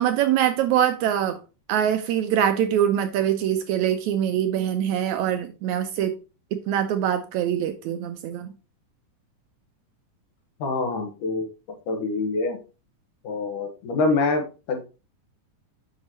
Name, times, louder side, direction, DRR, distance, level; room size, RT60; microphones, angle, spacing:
voice 1, 0.0-1.4 1.7-6.2 6.5-8.5, right 10 dB, 80° right, 1.8 m, -23 dB
voice 2, 10.6-11.5 11.9-12.6 13.2-14.8, left 3 dB, 80° left, 2.9 m, -25 dB
8.1 x 5.8 x 2.9 m
omnidirectional pair, 3.7 m